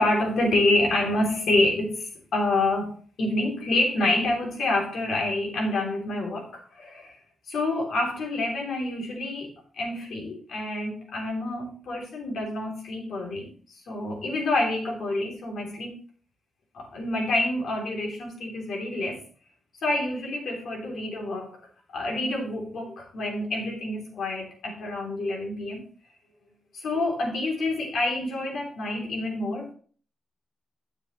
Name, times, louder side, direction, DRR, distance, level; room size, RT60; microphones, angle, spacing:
voice 1, 0.0-6.5 6.8-7.1 7.5-9.5 9.8-13.5 13.9-16.0 16.7-19.2 19.8-21.6 21.9-25.8 26.7-29.7, left 2 dB, 85° left, -1 dB, 3.3 m, -27 dB
10.5 x 7.0 x 3.2 m, 0.43 s
cardioid pair, 90°, 0 cm